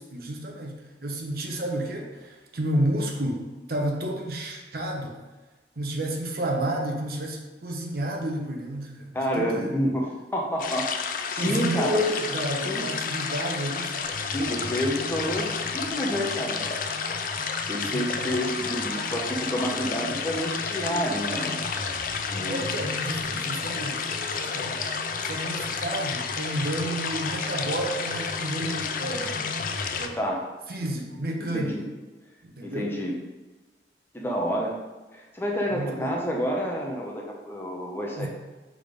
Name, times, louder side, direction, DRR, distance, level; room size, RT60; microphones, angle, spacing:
voice 1, 0.0-5.2 5.8-9.8 11.4-14.1 17.9-18.5 22.4-24.8 25.2-29.4 30.0-30.2 30.7-31.8 32.4-32.9 35.7-36.2 38.2-38.3, right 1 dB, 55° right, 1 dB, 0.9 m, -31 dB
voice 2, 9.1-12.0 12.6-12.9 14.3-16.6 17.7-21.6 22.3-22.6 30.2-30.4 30.8-31.1 31.4-31.8 32.6-33.2 34.1-34.8 35.1-38.3, equal, 10° left, -1 dB, 0.8 m, -29 dB
sound 1, 10.6-30.1, left 6 dB, 45° left, 0.4 m, -31 dB
sound 2, 14.0-30.0, left 1 dB, 75° left, 1.4 m, -39 dB
5.3 x 3.8 x 5.2 m, 1.2 s
head